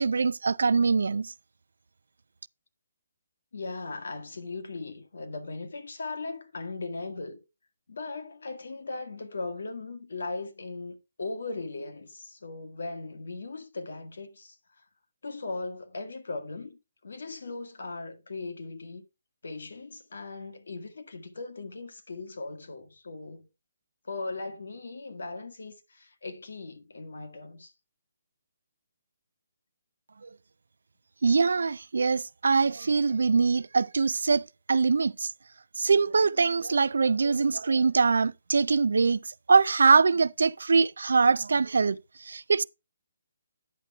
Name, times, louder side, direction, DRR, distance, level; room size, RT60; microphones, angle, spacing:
voice 1, 0.0-1.3 30.2-30.3 31.2-35.3 35.8-42.6, right 4 dB, 75° right, 0.4 m, -23 dB
voice 2, 3.5-7.4 7.9-14.8 15.2-19.0 19.4-23.5 24.0-27.7, left 3 dB, 70° left, 1.6 m, -38 dB
9.5 x 6.8 x 3.4 m
hypercardioid pair, 175°, 0 cm